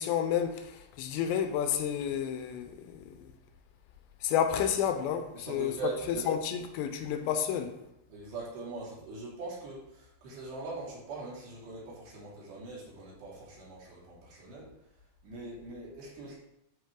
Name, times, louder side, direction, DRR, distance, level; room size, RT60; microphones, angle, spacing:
voice 1, 0.0-3.3 4.2-5.7 6.1-7.8, left 9 dB, 85° left, 2.9 m, -31 dB
voice 2, 5.3-6.3 8.1-14.7 15.2-16.4, right 3 dB, 70° right, 5.0 m, -41 dB
13.0 x 4.3 x 3.8 m
omnidirectional pair, 5.1 m